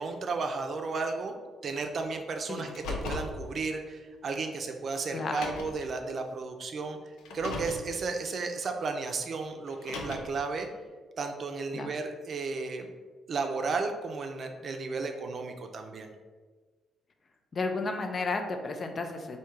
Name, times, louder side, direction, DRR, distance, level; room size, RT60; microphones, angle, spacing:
voice 1, 0.0-1.4 1.6-7.0 7.3-10.7 11.2-13.0 13.3-16.1, right 4 dB, 50° right, 5 dB, 0.5 m, -34 dB
Car, 2.6-3.4 4.4-4.5 5.2-5.8 7.2-7.9 9.7-10.4, left 3 dB, 90° left, 0.6 m, -37 dB
voice 2, 5.1-5.4 11.7-11.9 17.5-19.4, left 3 dB, 40° left, 5 dB, 0.5 m, -32 dB
3.5 x 2.7 x 4.5 m, 1.4 s
cardioid pair, 90°, 0 cm